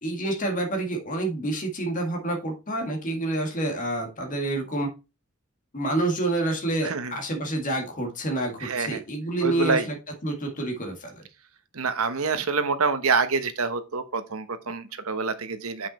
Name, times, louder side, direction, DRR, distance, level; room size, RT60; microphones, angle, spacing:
voice 1, 0.0-4.9 5.7-10.0 10.2-11.3, right 2 dB, 40° left, 1.9 m, -28 dB
voice 2, 6.8-7.1 8.6-9.0 9.4-9.8 11.7-15.9, right 4 dB, 85° right, 1.1 m, -26 dB
7.2 x 5.8 x 4.3 m
head